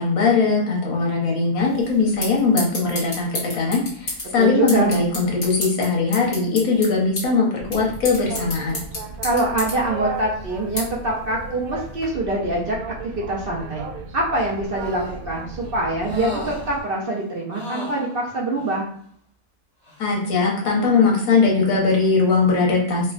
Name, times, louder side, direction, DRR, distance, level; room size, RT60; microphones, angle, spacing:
voice 1, 0.0-8.8 20.0-23.1, left 4 dB, 80° left, -2 dB, 1.4 m, -20 dB
sound 1, 1.6-12.0, left 2 dB, 55° left, 1.7 m, -34 dB
voice 2, 4.4-4.9 9.2-12.8 13.2-13.8 14.1-18.9, right 2 dB, 55° right, -3 dB, 0.7 m, -24 dB
Boat Water vehicle, 7.6-16.8, right 4 dB, 85° right, 1.1 m, -35 dB
sound 2, 14.3-15.3 16.0-17.1 17.5-18.8 19.8-20.0, left 2 dB, 20° left, 1.2 m, -35 dB
4.4 x 2.3 x 2.4 m, 0.63 s
omnidirectional pair, 1.5 m